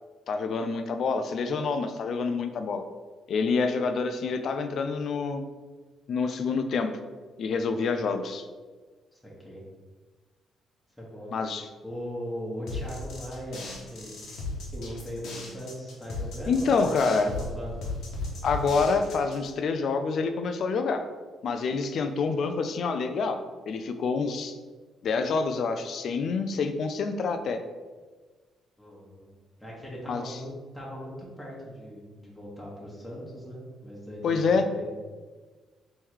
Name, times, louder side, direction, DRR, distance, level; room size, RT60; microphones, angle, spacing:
voice 1, 0.3-2.8 3.3-5.4 6.1-6.9 7.4-8.5 11.3-11.7 16.5-17.3 18.4-21.0 21.4-24.6 25.0-27.6 30.1-30.4 34.2-34.6, left 4 dB, 60° left, 8 dB, 0.4 m, -27 dB
voice 2, 11.0-11.3 11.8-14.5 14.7-17.9 28.8-34.8, equal, 5° left, -5 dB, 1.3 m, -39 dB
sound 1, 12.7-19.5, left 2 dB, 80° left, 1.2 m, -36 dB
3.6 x 3.1 x 4.6 m, 1.4 s
cardioid pair, 90°, 0 cm